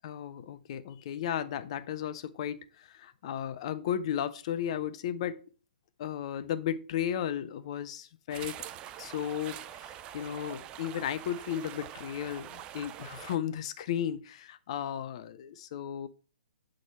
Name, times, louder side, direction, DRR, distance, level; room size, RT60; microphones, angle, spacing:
voice 1, 0.0-5.5 6.0-8.6 9.0-16.1, left 9 dB, 40° left, 12 dB, 0.5 m, -35 dB
sound 1, 8.3-13.4, right 11 dB, 20° right, 0.3 m, -44 dB
7.8 x 3.8 x 4.3 m, 0.37 s
figure-of-eight pair, 125°, 5 cm